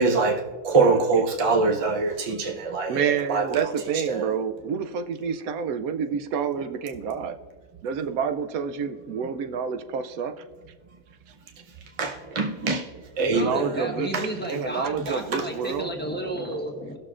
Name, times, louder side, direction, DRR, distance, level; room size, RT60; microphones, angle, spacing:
voice 1, 0.0-3.6 4.1-4.3 12.0-12.9 13.2-13.6, right 4 dB, 40° right, 0.5 m, -23 dB
voice 2, 2.9-7.3 7.8-10.3 13.2-14.1 14.5-15.9, right 7 dB, 85° right, 1.1 m, -28 dB
voice 3, 13.3-17.0, equal, 10° left, 1.1 m, -32 dB
18.0 x 6.6 x 2.4 m
omnidirectional pair, 1.5 m